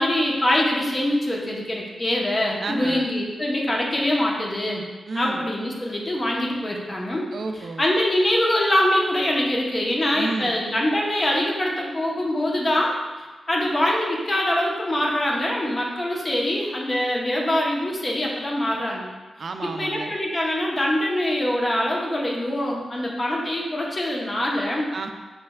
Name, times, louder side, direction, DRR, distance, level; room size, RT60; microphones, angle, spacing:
voice 1, 0.0-4.8 5.1-7.2 7.8-12.9 13.5-19.1 19.8-24.9, left 1 dB, 35° left, -2 dB, 0.9 m, -24 dB
voice 2, 2.6-3.1 5.1-5.5 7.3-7.9 10.1-10.6 19.4-20.2 24.9-25.1, right 3 dB, 65° right, 5 dB, 0.3 m, -31 dB
5.8 x 3.2 x 2.3 m, 1.3 s
cardioid pair, 70°, 0 cm